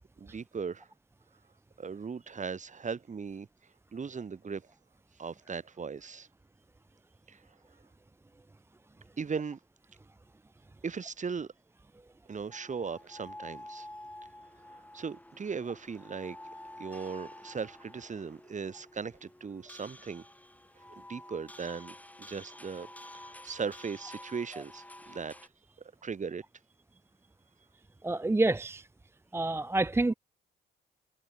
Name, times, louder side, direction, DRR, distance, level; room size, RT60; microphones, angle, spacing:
voice 1, 0.2-0.9 1.8-3.5 3.9-4.7 5.2-6.3 7.3-7.4 9.2-9.6 10.8-11.5 12.3-13.9 14.7-16.4 16.8-20.2 21.0-22.9 23.1-25.3 26.0-26.4, right 5 dB, 40° right, 4.5 m, -38 dB
sound 1, 12.5-25.5, left 1 dB, 5° left, 2.6 m, -50 dB
voice 2, 28.0-28.8 29.3-30.1, right 2 dB, 10° right, 0.7 m, -27 dB
cardioid pair, 90°, 20 cm